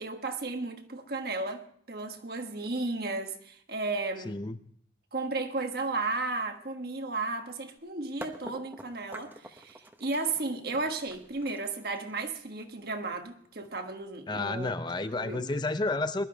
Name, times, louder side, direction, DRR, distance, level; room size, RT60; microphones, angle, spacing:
voice 1, 0.0-4.4 5.1-14.7 15.2-15.5, right 3 dB, 55° right, 1.4 m, -34 dB
voice 2, 4.2-4.6 14.3-16.3, left 2 dB, 25° left, 0.5 m, -31 dB
sound 1, 8.2-14.0, right 1 dB, 10° right, 1.0 m, -47 dB
21.5 x 12.0 x 3.4 m
head